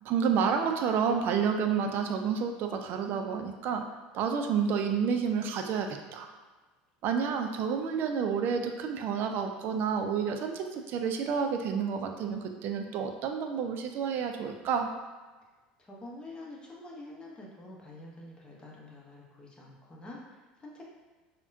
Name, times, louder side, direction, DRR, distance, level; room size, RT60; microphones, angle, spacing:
voice 1, 0.0-3.8 4.1-6.3 7.0-14.9, right 6 dB, 55° right, 5 dB, 0.4 m, -30 dB
voice 2, 15.8-20.9, left 2 dB, 20° left, -3 dB, 0.8 m, -47 dB
3.4 x 2.2 x 2.6 m, 1.3 s
hypercardioid pair, 85°, 4 cm